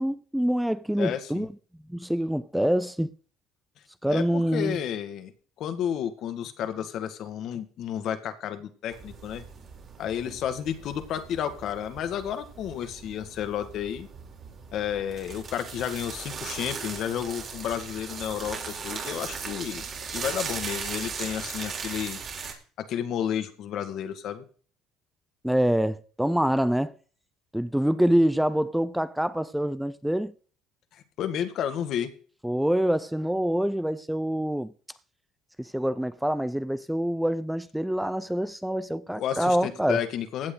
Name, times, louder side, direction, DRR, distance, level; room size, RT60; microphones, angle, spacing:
voice 1, 0.0-1.5 1.9-3.1 4.0-4.8 25.4-26.9 27.5-30.3 32.4-34.7 35.6-40.0, equal, 5° right, 0.6 m, -26 dB
voice 2, 1.0-1.5 4.1-5.3 5.6-9.4 10.0-14.1 14.7-22.2 22.8-24.4 31.2-32.1 39.1-40.5, left 9 dB, 65° left, 2.0 m, -31 dB
sound 1, 8.9-22.5, right 5 dB, 45° right, 3.9 m, -38 dB
16.0 x 8.5 x 4.0 m
supercardioid pair, 85°, 0 cm